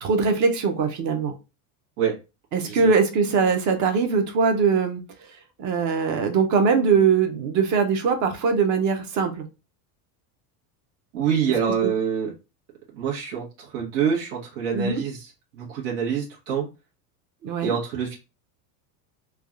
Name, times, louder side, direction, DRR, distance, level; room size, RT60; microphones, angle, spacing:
voice 1, 0.0-1.3 2.5-5.0 5.6-9.4 14.7-15.0 17.4-17.7, right 5 dB, 40° right, 6 dB, 0.5 m, -21 dB
voice 2, 11.1-12.3 12.9-16.7 17.6-18.1, right 7 dB, 90° right, -3 dB, 1.1 m, -26 dB
3.3 x 2.3 x 2.3 m, 0.28 s
cardioid pair, 150°, 48 cm